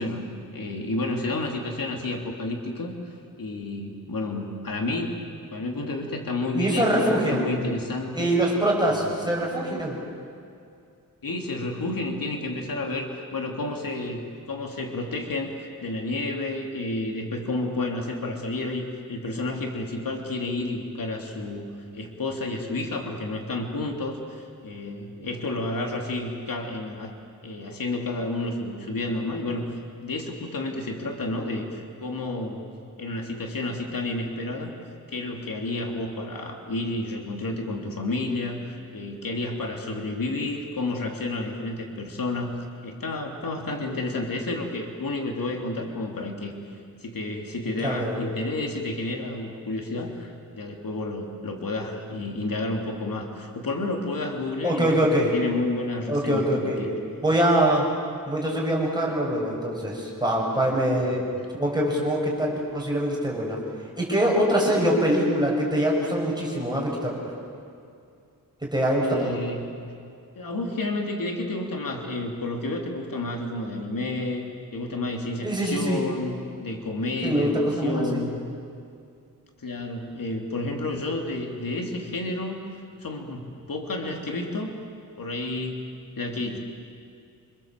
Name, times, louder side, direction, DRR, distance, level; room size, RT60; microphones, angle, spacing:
voice 1, 0.0-3.1 3.4-5.2 5.5-8.3 9.0-9.1 11.2-21.7 21.9-27.1 27.4-29.7 30.0-32.7 33.0-34.7 35.1-42.6 42.8-46.5 47.0-55.0 55.3-56.9 61.1-61.4 69.0-69.8 70.3-78.4 79.6-82.6 83.0-84.8 85.2-86.6, left 2 dB, 75° left, 2 dB, 3.1 m, -30 dB
voice 2, 6.5-7.4 8.1-10.0 47.8-48.2 54.6-55.3 56.1-56.8 57.2-57.9 58.3-61.2 61.5-63.6 64.0-67.3 68.6-69.4 75.4-76.0 77.2-78.2, right 1 dB, 10° right, -2 dB, 7.0 m, -24 dB
27.0 x 26.0 x 7.6 m, 2.4 s
wide cardioid pair, 120°, 34 cm